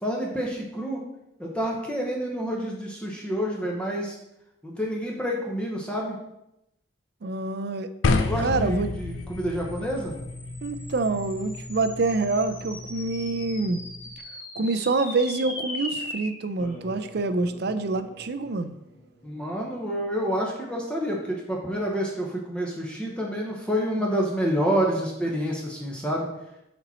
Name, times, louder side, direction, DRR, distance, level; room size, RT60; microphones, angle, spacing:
voice 1, 0.0-1.0 1.4-4.2 4.6-6.2 8.2-10.1 19.2-26.3, equal, 5° left, -2 dB, 1.0 m, -28 dB
voice 2, 7.2-7.9 8.4-8.9 10.6-13.8 14.6-18.8, right 3 dB, 55° right, 11 dB, 0.5 m, -26 dB
sound 1, 8.0-14.2, left 3 dB, 85° left, 0.6 m, -31 dB
sound 2, 9.1-19.8, left 2 dB, 45° left, 2.2 m, -41 dB
6.8 x 4.3 x 4.2 m, 0.86 s
head